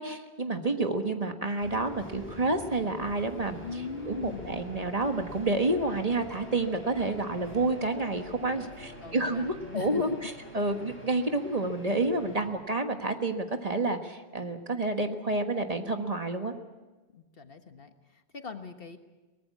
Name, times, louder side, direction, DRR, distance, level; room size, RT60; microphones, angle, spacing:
voice 1, 0.0-3.6 4.1-16.5, right 2 dB, 35° right, 5 dB, 1.5 m, -29 dB
sound 1, 1.6-12.5, equal, 10° left, 7.9 m, -46 dB
voice 2, 3.6-4.6 9.0-10.3 17.1-19.0, left 5 dB, 60° left, 7 dB, 1.6 m, -40 dB
23.0 x 19.0 x 8.5 m, 1.2 s
omnidirectional pair, 1.1 m